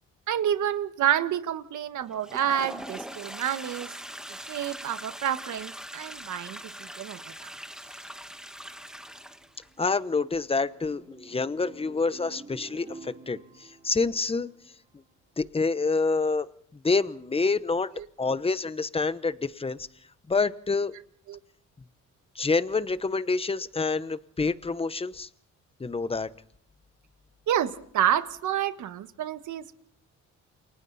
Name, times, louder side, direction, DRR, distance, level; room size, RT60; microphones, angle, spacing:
voice 1, 0.3-3.9 4.5-7.5 18.0-18.1 21.3-21.4 27.5-29.8, right 10 dB, 75° right, 10 dB, 1.6 m, -29 dB
Toilet flush, 2.1-9.7, equal, ahead, 1.6 m, -42 dB
sound 1, 9.4-15.0, right 3 dB, 20° right, 7.1 m, -50 dB
voice 2, 9.8-14.5 15.4-16.5 16.7-17.9 18.2-19.9 20.3-20.9 22.3-25.3 25.8-26.3, left 4 dB, 20° left, 14 dB, 1.0 m, -27 dB
29.0 x 24.0 x 4.2 m, 0.65 s
cardioid pair, 90°, 30 cm